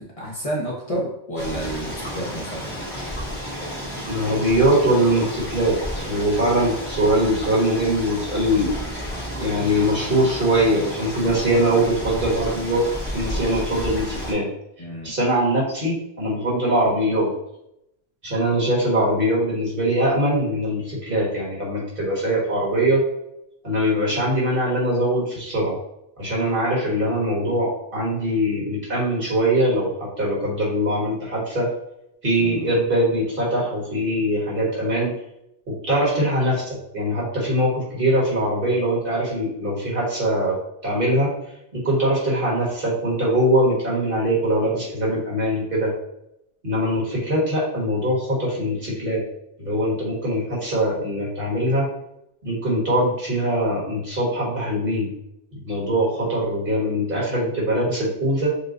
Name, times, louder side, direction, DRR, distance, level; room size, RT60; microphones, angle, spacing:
voice 1, 0.2-2.7 14.8-15.1 32.4-32.7, right 1 dB, 35° left, -4 dB, 0.9 m, -30 dB
sound 1, 1.4-14.3, equal, 10° left, 1.1 m, -31 dB
voice 2, 4.1-5.8 6.0-8.7 9.4-12.8 13.1-14.5 15.0-17.3 18.2-23.0 23.6-25.8 26.2-31.7 32.2-35.1 35.7-40.6 40.8-41.3 41.7-45.9 46.6-49.2 49.6-51.9 52.4-55.1 55.6-58.5, right 1 dB, 60° right, -5 dB, 1.7 m, -22 dB
6.7 x 2.3 x 2.5 m, 0.81 s
omnidirectional pair, 1.1 m